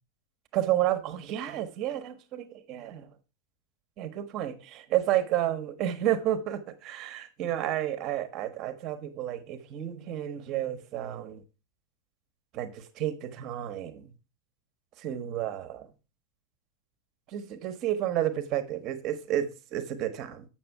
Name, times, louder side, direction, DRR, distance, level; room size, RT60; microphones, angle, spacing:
voice 1, 0.5-3.1 4.0-11.4 12.5-14.1 15.0-15.9 17.3-20.5, right 12 dB, 35° right, 1.1 m, -31 dB
7.9 x 6.1 x 4.7 m
figure-of-eight pair, 90°, 0 cm